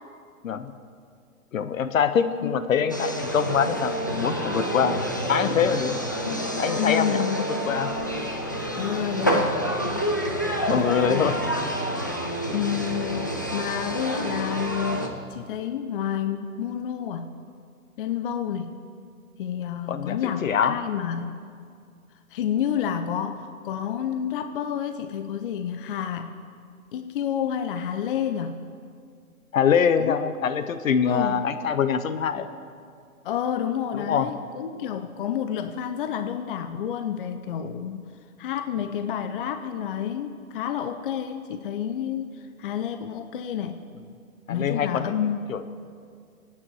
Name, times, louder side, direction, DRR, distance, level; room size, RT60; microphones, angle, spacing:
voice 1, 1.5-5.0 5.3-6.0 6.6-7.9 10.7-11.4 19.9-20.8 29.5-32.5 33.9-34.3 44.5-45.1 45.5-45.6, left 7 dB, 65° left, 11 dB, 1.0 m, -24 dB
sound 1, 2.9-15.1, equal, 15° left, 0.3 m, -28 dB
voice 2, 6.7-7.5 8.8-9.6 10.7-11.4 12.5-17.4 18.0-18.8 19.4-21.4 22.3-26.3 26.9-28.7 30.0-30.2 31.0-31.4 33.2-38.1 38.4-43.9 44.5-45.4, left 9 dB, 35° left, 8 dB, 0.7 m, -29 dB
24.5 x 9.6 x 4.8 m, 2.2 s
hypercardioid pair, 135°, 43 cm